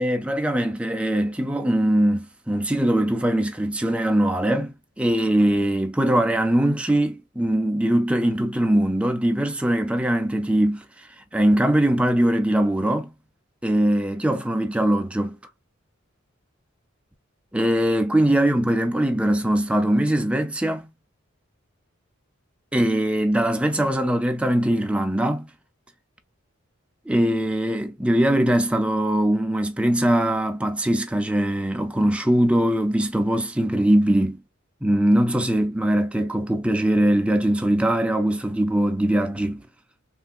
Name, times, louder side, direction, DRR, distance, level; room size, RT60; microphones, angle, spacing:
voice 1, 0.0-11.1 11.3-13.1 13.6-15.4 17.5-20.9 22.7-25.5 27.1-34.4 34.8-39.6, right 1 dB, 5° right, 0.4 m, -21 dB
3.2 x 2.6 x 2.3 m
head